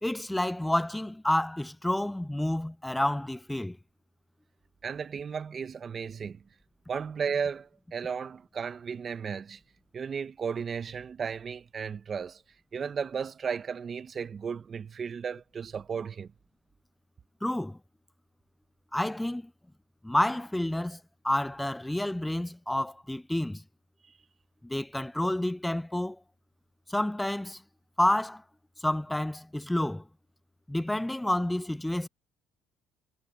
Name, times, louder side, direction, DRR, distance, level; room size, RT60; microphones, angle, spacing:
voice 1, 0.0-3.8 17.4-17.8 18.9-19.5 20.0-21.0 21.2-23.6 24.6-26.2 26.9-27.6 28.0-28.4 28.8-30.0 30.7-32.1, left 1 dB, 5° left, 0.4 m, -29 dB
voice 2, 4.8-6.4 6.9-9.6 9.9-12.4 12.7-16.3, right 6 dB, 35° right, 1.3 m, -34 dB
supercardioid pair, 95°, 0 cm